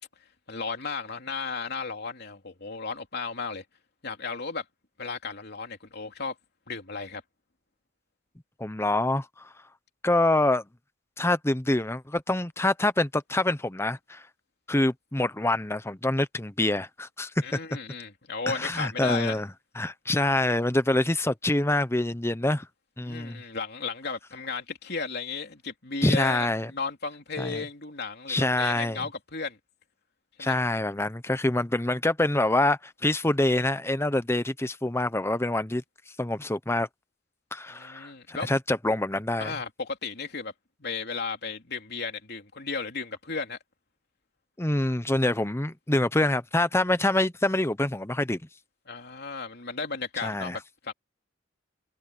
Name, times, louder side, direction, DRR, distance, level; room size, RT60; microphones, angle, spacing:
voice 1, 0.5-3.6 4.0-4.6 5.0-6.3 6.7-7.2 17.4-19.4 23.0-29.6 30.4-30.6 37.7-38.5 39.4-40.5 40.8-43.6 48.9-50.9, left 4 dB, 55° left, 3.3 m, -34 dB
voice 2, 8.6-9.5 10.0-10.6 11.2-14.2 14.7-17.3 18.5-19.5 19.8-22.7 23.0-23.4 26.0-26.7 27.4-27.6 28.3-29.0 30.4-35.8 36.2-36.9 37.5-39.5 44.6-48.4 50.2-50.6, left 1 dB, 15° left, 0.9 m, -26 dB
head